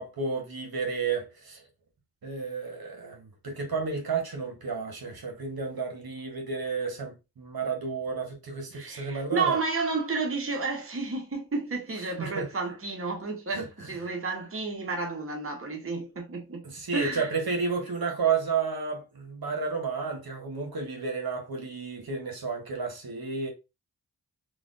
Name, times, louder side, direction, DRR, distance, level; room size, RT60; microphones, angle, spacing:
voice 1, 0.0-1.6 2.2-9.6 12.2-12.5 13.5-13.9 16.6-23.5, right 5 dB, 60° right, 1.1 m, -32 dB
voice 2, 8.7-16.6 16.9-17.3, right 4 dB, 35° right, 0.9 m, -31 dB
3.2 x 2.3 x 2.5 m
cardioid pair, 40°, 41 cm